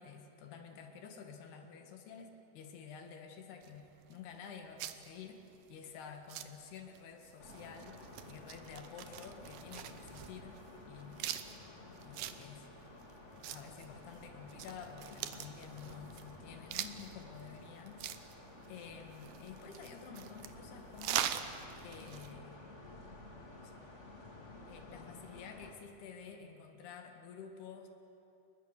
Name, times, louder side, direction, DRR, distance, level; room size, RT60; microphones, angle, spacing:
voice 1, 0.0-8.0 8.3-10.6 10.9-11.2 12.0-12.7 13.4-18.0 18.7-21.4 21.8-22.6 23.5-23.8 24.7-27.9, left 6 dB, 65° left, 5 dB, 3.5 m, -50 dB
sound 1, 3.6-22.3, right 11 dB, 80° right, 2.1 m, -44 dB
sound 2, 7.4-25.7, left 2 dB, 40° left, 0.9 m, -53 dB
30.0 x 21.5 x 6.6 m, 2.9 s
omnidirectional pair, 5.3 m